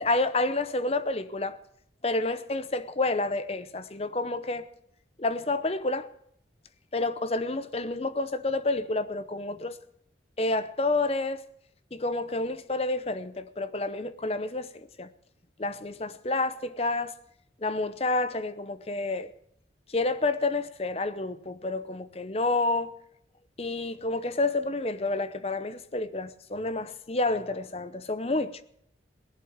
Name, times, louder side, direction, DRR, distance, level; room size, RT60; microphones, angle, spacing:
voice 1, 0.0-1.6 2.0-4.7 5.2-6.1 6.9-9.8 10.4-11.4 11.9-14.7 15.0-15.1 15.6-17.1 17.6-19.3 19.9-22.9 23.6-28.6, left 2 dB, 35° left, 0.7 m, -29 dB
17.5 x 11.5 x 7.2 m
head